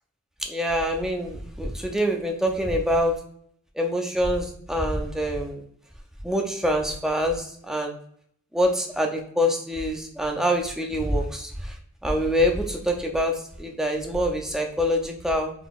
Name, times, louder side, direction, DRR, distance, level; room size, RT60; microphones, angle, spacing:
voice 1, 0.5-3.2 3.8-5.6 6.2-8.0 8.5-11.7 12.0-15.5, equal, ahead, 2 dB, 0.4 m, -25 dB
3.9 x 3.7 x 2.4 m, 0.64 s
head